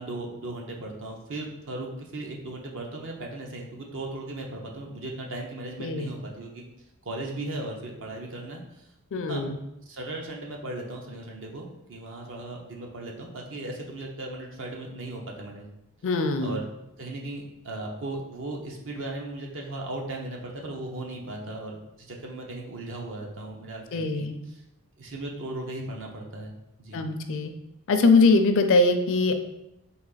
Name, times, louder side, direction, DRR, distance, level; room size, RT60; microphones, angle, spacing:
voice 1, 0.0-6.6 7.0-8.9 9.3-9.4 9.9-15.7 16.4-16.7 17.0-24.6 25.0-26.5 26.8-27.0, right 2 dB, 60° right, 0 dB, 0.8 m, -37 dB
voice 2, 5.8-6.1 9.1-9.6 16.0-16.6 23.9-24.4 26.9-27.5 27.9-29.3, left 3 dB, 60° left, 7 dB, 0.4 m, -22 dB
4.1 x 2.9 x 3.9 m, 0.86 s
head